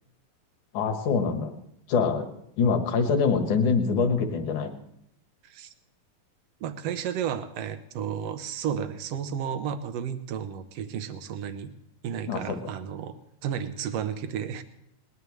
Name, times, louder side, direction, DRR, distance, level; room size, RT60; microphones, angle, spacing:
voice 1, 0.7-1.6 1.9-2.3 2.6-4.8 12.3-12.6, left 5 dB, 65° left, 6 dB, 2.8 m, -24 dB
voice 2, 6.6-11.7 12.0-13.2 13.4-14.6, right 8 dB, 75° right, 9 dB, 1.5 m, -32 dB
20.0 x 20.0 x 3.2 m, 0.75 s
omnidirectional pair, 4.1 m